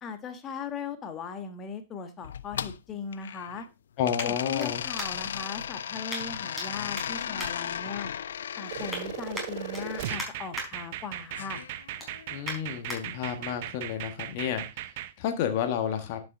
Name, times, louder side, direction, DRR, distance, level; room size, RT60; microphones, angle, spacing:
voice 1, 0.0-3.6 4.2-8.1 8.6-11.6, left 5 dB, 25° left, 8 dB, 1.4 m, -38 dB
sound 1, 1.5-5.4 6.1-6.7 6.9-8.3 8.6-9.0 9.3-10.7 11.1-11.4 11.7-13.0 13.6-13.7, equal, 5° left, 4.7 m, -40 dB
sound 2, 2.2-3.7 4.0-10.2 11.3-12.4, left 8 dB, 65° left, 0.4 m, -36 dB
voice 2, 4.0-4.8 12.3-14.6 15.2-16.2, left 9 dB, 45° left, 7 dB, 1.6 m, -30 dB
sound 3, 8.7-15.1, right 14 dB, 50° right, 0.7 m, -38 dB
11.0 x 6.3 x 3.8 m, 0.26 s
figure-of-eight pair, 110°, 0 cm